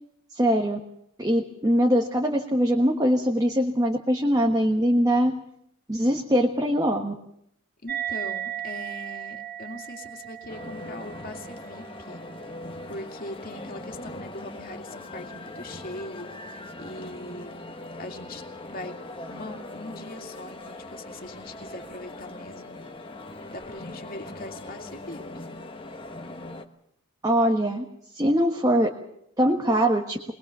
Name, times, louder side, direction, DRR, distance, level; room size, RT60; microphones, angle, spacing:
voice 1, 0.3-0.8 1.2-5.3 5.9-7.1 27.2-27.8 28.1-28.9 29.4-30.2, equal, 20° right, 1 dB, 1.4 m, -22 dB
voice 2, 7.8-12.2 12.9-17.5 18.0-18.9 19.3-22.8 23.5-25.2, left 1 dB, 45° left, 3 dB, 2.5 m, -41 dB
sound 1, 7.9-14.8, right 11 dB, 45° right, 1.3 m, -37 dB
sound 2, 10.5-26.7, left 2 dB, 25° left, 1.3 m, -40 dB
22.0 x 20.5 x 6.8 m, 0.76 s
head